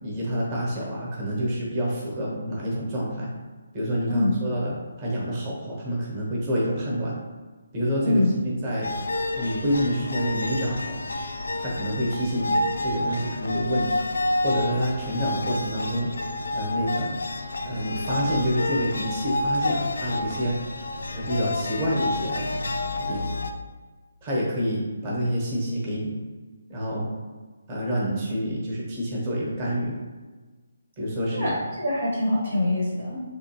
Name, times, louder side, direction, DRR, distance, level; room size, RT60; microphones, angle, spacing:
voice 1, 0.0-3.3 3.7-7.2 7.7-8.9 9.3-11.0 11.6-14.0 14.4-16.1 16.5-17.2 17.6-20.6 21.1-22.6 23.0-23.3 24.2-26.2 26.7-27.1 27.7-29.9 31.0-31.6, equal, 30° right, -5 dB, 1.0 m, -27 dB
voice 2, 4.1-4.4 8.0-8.3 31.3-33.2, left 1 dB, 65° right, -4 dB, 1.1 m, -24 dB
sound 1, 8.8-23.5, left 2 dB, 70° left, 0.3 m, -29 dB
3.4 x 2.9 x 2.9 m, 1.3 s
figure-of-eight pair, 145°, 0 cm